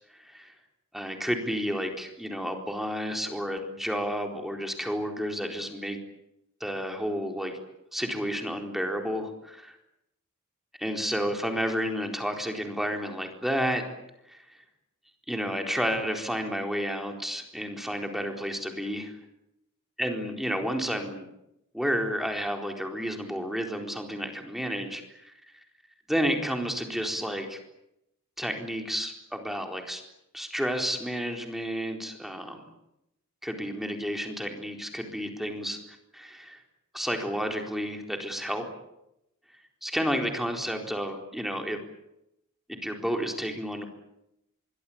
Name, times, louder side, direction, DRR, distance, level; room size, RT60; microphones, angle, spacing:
voice 1, 0.1-0.5 0.9-6.0 6.6-7.6 7.9-9.7 10.8-13.9 14.3-14.4 15.3-19.2 20.0-21.3 21.7-25.3 26.1-27.6 28.4-30.0 30.3-32.7 33.4-35.8 36.1-36.6 36.9-38.7 39.8-41.8 42.8-43.9, equal, ahead, 3 dB, 4.1 m, -31 dB
25.0 x 23.5 x 8.8 m, 0.84 s
head